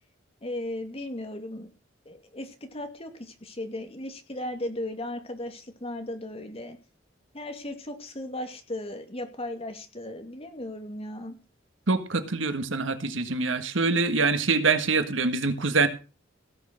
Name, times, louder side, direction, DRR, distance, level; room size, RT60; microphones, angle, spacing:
voice 1, 0.4-1.7 2.1-6.8 7.3-11.4, left 1 dB, 30° left, 6 dB, 2.4 m, -36 dB
voice 2, 11.9-15.9, right 4 dB, 75° right, 9 dB, 1.6 m, -25 dB
17.0 x 6.6 x 6.4 m, 0.34 s
head